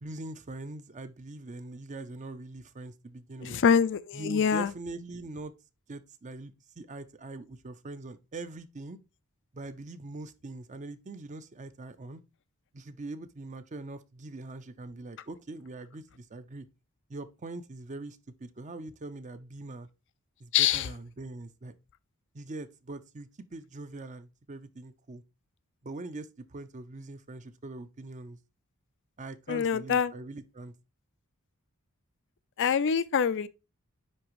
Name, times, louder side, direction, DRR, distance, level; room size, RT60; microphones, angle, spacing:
voice 1, 0.0-3.6 4.1-5.5 5.9-9.0 9.5-12.2 12.7-16.7 17.1-19.9 20.4-21.7 22.3-25.2 25.8-28.4 29.2-30.7, right 2 dB, 35° right, 0.6 m, -42 dB
voice 2, 3.4-4.7 20.5-20.9 29.5-30.1 32.6-33.5, left 7 dB, 55° left, 0.4 m, -25 dB
9.8 x 3.5 x 3.0 m
head